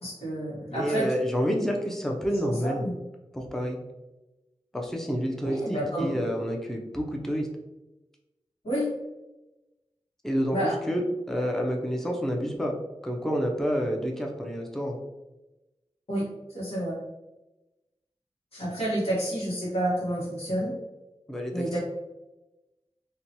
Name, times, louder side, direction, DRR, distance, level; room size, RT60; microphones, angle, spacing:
voice 1, 0.0-1.1 2.4-3.0 5.4-6.2 8.6-8.9 10.5-10.7 16.1-17.0 18.5-20.8 21.5-21.8, right 1 dB, 60° left, -7 dB, 1.1 m, -29 dB
voice 2, 0.7-2.8 3.3-3.8 4.7-7.5 10.2-12.8 13.0-15.0 21.3-21.8, equal, 5° left, 1 dB, 0.5 m, -29 dB
2.8 x 2.2 x 2.7 m, 1.0 s
wide cardioid pair, 45°, 11 cm